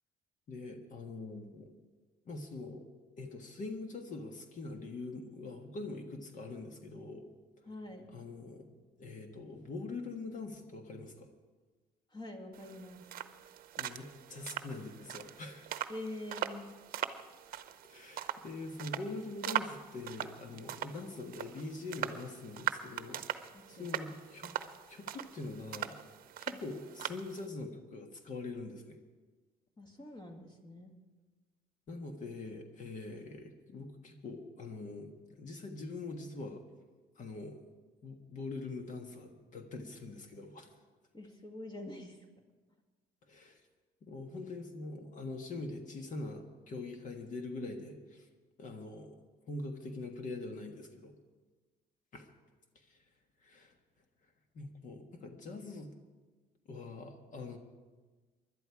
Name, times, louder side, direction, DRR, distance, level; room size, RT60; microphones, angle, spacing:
voice 1, 0.5-1.7 2.2-2.9 3.2-7.3 8.1-8.7 9.0-11.3 13.8-15.7 17.9-24.5 24.9-26.0 26.4-29.0 31.9-35.1 35.4-36.6 37.2-37.6 38.0-40.7 43.3-43.6 44.0-48.3 48.6-49.2 49.5-51.1 52.1-52.3 52.9-53.0 53.4-53.7 54.5-55.9 56.7-57.6, left 3 dB, 50° left, 5 dB, 1.5 m, -43 dB
voice 2, 7.7-8.1 12.1-13.1 15.9-16.7 23.5-24.0 26.5-26.6 29.8-31.0 41.1-42.2, left 1 dB, 25° left, 4 dB, 1.8 m, -45 dB
sound 1, 12.5-27.5, right 11 dB, 60° right, 0.8 m, -41 dB
20.5 x 11.5 x 4.8 m, 1.3 s
cardioid pair, 110°, 17 cm